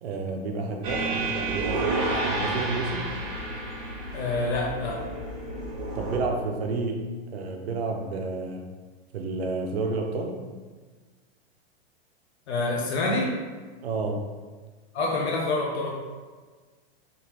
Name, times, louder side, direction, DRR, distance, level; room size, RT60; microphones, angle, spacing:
voice 1, 0.0-3.1 5.9-8.7 9.1-10.4 13.8-14.3, right 3 dB, 75° right, 3 dB, 0.7 m, -30 dB
sound 1, 0.8-6.2, right 2 dB, 25° right, 0.6 m, -30 dB
voice 2, 4.1-5.1 12.5-13.4 14.9-15.9, left 2 dB, 85° left, -3 dB, 0.9 m, -27 dB
3.7 x 2.9 x 3.0 m, 1.4 s
supercardioid pair, 165°, 32 cm